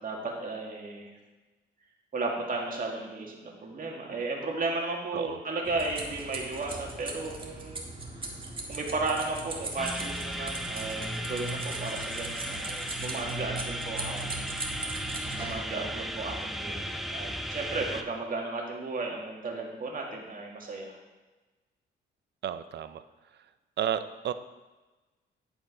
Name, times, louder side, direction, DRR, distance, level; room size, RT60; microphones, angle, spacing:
voice 1, 0.0-1.1 2.1-8.3 8.7-14.6 15.4-21.0, right 3 dB, 45° right, 0 dB, 2.1 m, -34 dB
sound 1, 5.6-15.5, right 2 dB, 25° right, 1.7 m, -38 dB
sound 2, 9.8-18.0, equal, ahead, 0.7 m, -36 dB
voice 2, 22.4-23.0 23.8-24.3, right 9 dB, 60° right, 12 dB, 0.6 m, -32 dB
10.5 x 5.1 x 4.9 m, 1.2 s
cardioid pair, 90°, 20 cm